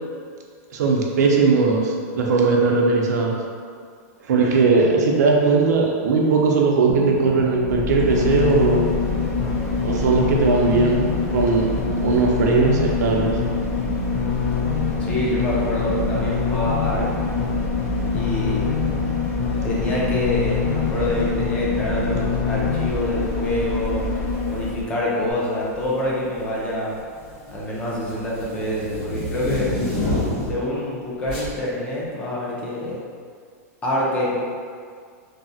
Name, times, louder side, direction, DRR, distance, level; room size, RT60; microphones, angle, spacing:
voice 1, 0.7-3.4 4.2-8.9 9.8-13.4, right 4 dB, 80° right, 0 dB, 0.5 m, -19 dB
voice 2, 4.6-4.9 15.0-17.1 18.1-18.7 19.6-24.0 24.5-27.0 27.5-29.7 30.5-33.0 33.8-34.4, left 1 dB, 15° left, -6 dB, 0.3 m, -26 dB
sound 1, 6.9-22.9, left 6 dB, 90° left, 0.4 m, -28 dB
sound 2, 7.6-24.9 25.3-25.4, left 3 dB, 75° left, 0.8 m, -26 dB
sound 3, 24.3-24.6 25.6-26.1 26.4-30.7 31.3-31.5, left 2 dB, 45° left, 1.5 m, -28 dB
3.2 x 2.0 x 2.6 m, 2.1 s
supercardioid pair, 170°, 9 cm